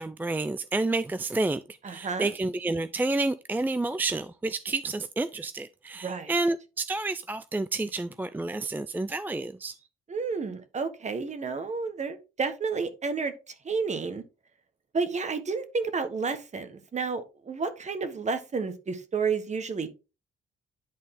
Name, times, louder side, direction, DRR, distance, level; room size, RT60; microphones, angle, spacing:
voice 1, 0.0-9.8, right 2 dB, 10° right, 0.3 m, -30 dB
voice 2, 1.8-2.3 6.0-6.3 10.1-14.2 14.9-19.9, right 4 dB, 35° right, 1.4 m, -31 dB
10.5 x 4.1 x 3.7 m
cardioid pair, 90°, 20 cm